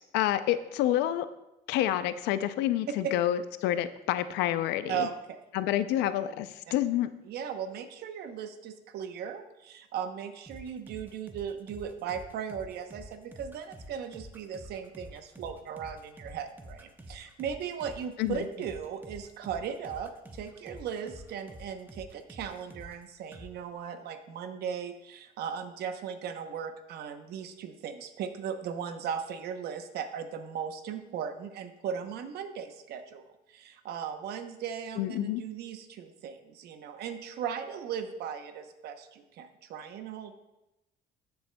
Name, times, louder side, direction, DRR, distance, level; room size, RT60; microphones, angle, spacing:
voice 1, 0.1-1.3 1.7-5.1 5.5-7.1 18.2-18.4 35.0-35.4, left 12 dB, 90° left, 13 dB, 0.5 m, -28 dB
voice 2, 4.9-5.4 7.3-33.2 33.5-40.3, right 7 dB, 75° right, 8 dB, 0.8 m, -37 dB
sound 1, 10.5-23.0 23.3-23.5, right 1 dB, 10° right, 0.8 m, -48 dB
14.0 x 7.0 x 2.2 m, 0.95 s
cardioid pair, 110°, 17 cm